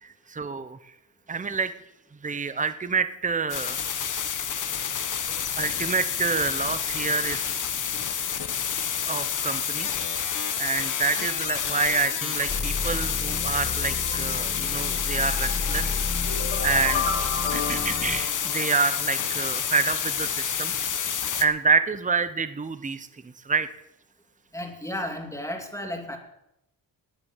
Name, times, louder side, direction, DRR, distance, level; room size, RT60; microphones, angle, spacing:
voice 1, 0.0-0.8 1.3-1.7 2.2-3.8 5.6-7.6 9.1-9.9 10.6-16.0 16.6-17.0 17.5-20.7 21.4-23.7, right 5 dB, 20° right, 12 dB, 0.9 m, -27 dB
sound 1, 3.5-21.4, left 8 dB, 50° left, 1.2 m, -29 dB
sound 2, 12.5-18.2, left 4 dB, 25° left, 1.5 m, -32 dB
sound 3, 16.3-19.3, left 5 dB, 80° left, 2.4 m, -32 dB
voice 2, 24.5-26.2, left 1 dB, 10° left, 2 dB, 2.8 m, -33 dB
19.0 x 7.0 x 7.2 m, 0.84 s
cardioid pair, 95°, 39 cm